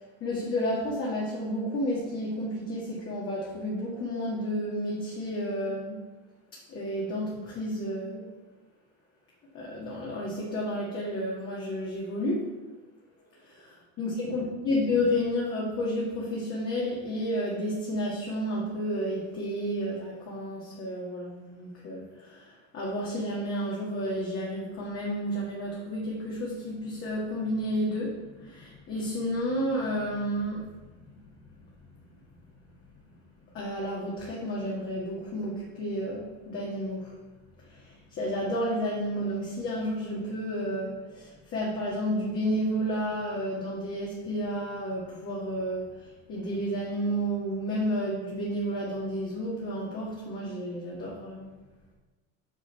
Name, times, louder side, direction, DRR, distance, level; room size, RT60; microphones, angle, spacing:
voice 1, 0.2-6.0 6.7-8.3 9.5-12.5 13.4-30.6 31.0-31.1 33.5-37.2 37.7-46.0 46.3-51.5, equal, 45° left, -5 dB, 2.2 m, -31 dB
7.3 x 6.4 x 4.5 m, 1.2 s
cardioid pair, 130°, 31 cm